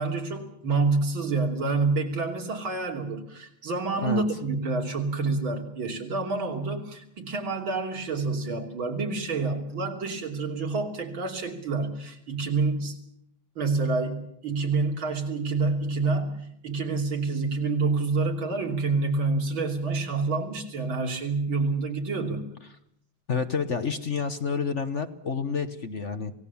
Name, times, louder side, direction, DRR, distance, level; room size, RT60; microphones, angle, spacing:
voice 1, 0.0-13.0 13.6-22.4, right 3 dB, 85° right, 2 dB, 3.7 m, -28 dB
voice 2, 23.3-26.3, left 5 dB, 45° left, 9 dB, 1.2 m, -29 dB
27.5 x 17.5 x 7.1 m, 0.73 s
omnidirectional pair, 2.1 m